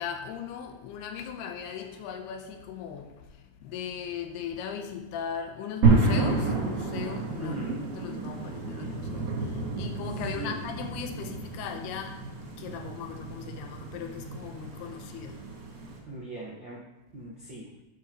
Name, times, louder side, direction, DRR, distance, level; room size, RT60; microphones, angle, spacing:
voice 1, 0.0-3.3 3.6-7.6 7.9-12.3 12.6-15.4, left 7 dB, 80° left, 2.8 m, -38 dB
sound 1, 5.8-16.0, right 3 dB, 50° right, 3.2 m, -30 dB
voice 2, 7.4-7.9 10.3-10.7 16.1-16.8 17.1-17.7, right 1 dB, 75° right, 1.0 m, -39 dB
12.0 x 8.7 x 3.0 m
omnidirectional pair, 4.8 m